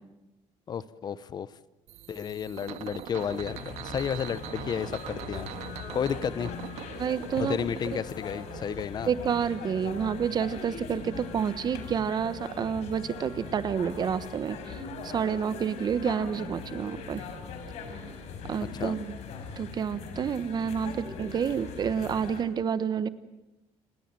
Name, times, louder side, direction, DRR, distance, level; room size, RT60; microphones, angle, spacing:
voice 1, 0.7-1.5 2.1-5.5 5.9-6.5 7.4-9.1 18.7-19.0, left 7 dB, 35° left, 17 dB, 0.9 m, -32 dB
sound 1, 1.9-8.9, right 12 dB, 75° right, 1.7 m, -42 dB
udelnaya markt, 3.2-22.4, left 5 dB, 70° left, 5.3 m, -41 dB
voice 2, 7.0-8.0 9.1-14.8 15.0-17.2 18.5-19.1 19.6-23.1, right 7 dB, 35° right, 15 dB, 1.2 m, -29 dB
30.0 x 20.0 x 7.7 m, 1.0 s
cardioid pair, 150°, 11 cm